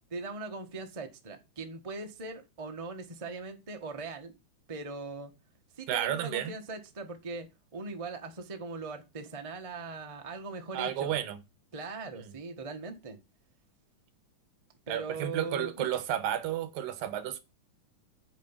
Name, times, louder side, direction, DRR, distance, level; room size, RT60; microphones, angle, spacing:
voice 1, 0.1-4.3 4.7-5.3 5.8-7.5 7.7-11.1 11.7-13.2 14.9-15.9, right 3 dB, 25° right, 0.7 m, -40 dB
voice 2, 5.9-6.5 10.7-11.4 12.3-12.4 14.9-17.4, right 10 dB, 90° right, 2.9 m, -32 dB
9.2 x 5.1 x 7.4 m
omnidirectional pair, 3.9 m